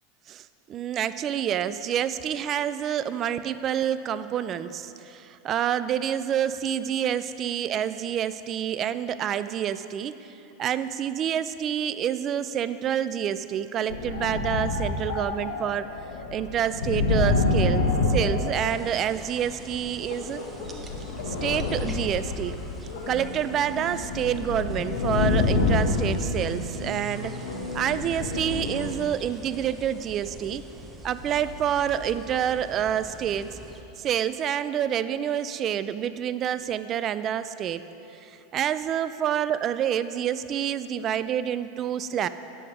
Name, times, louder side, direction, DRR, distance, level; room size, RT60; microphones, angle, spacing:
voice 1, 0.3-15.9 16.3-20.4 21.3-22.6 23.1-27.5 27.7-30.6 31.0-33.5 34.0-37.8 38.2-42.3, right 9 dB, 35° right, 13 dB, 0.3 m, -28 dB
sound 1, 13.9-19.3 20.0-28.9, left 3 dB, 85° left, 1.2 m, -27 dB
sound 2, 18.5-33.8, right 2 dB, 15° right, 0.8 m, -45 dB
9.9 x 7.5 x 4.9 m, 3.0 s
supercardioid pair, 125°, 0 cm